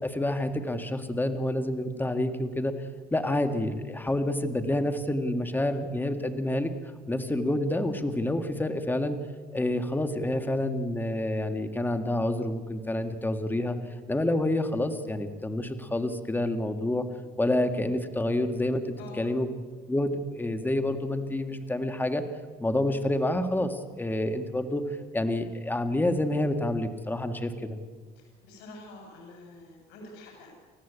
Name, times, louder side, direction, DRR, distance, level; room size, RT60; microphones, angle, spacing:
voice 1, 0.0-6.7 7.1-9.2 9.5-13.8 14.1-17.0 17.4-19.5 19.9-22.2 22.6-27.8, left 1 dB, 10° left, 8 dB, 1.9 m, -28 dB
voice 2, 28.2-30.5, left 2 dB, 90° left, 1 dB, 6.8 m, -47 dB
30.0 x 14.0 x 8.3 m, 1.5 s
cardioid pair, 110°, 17 cm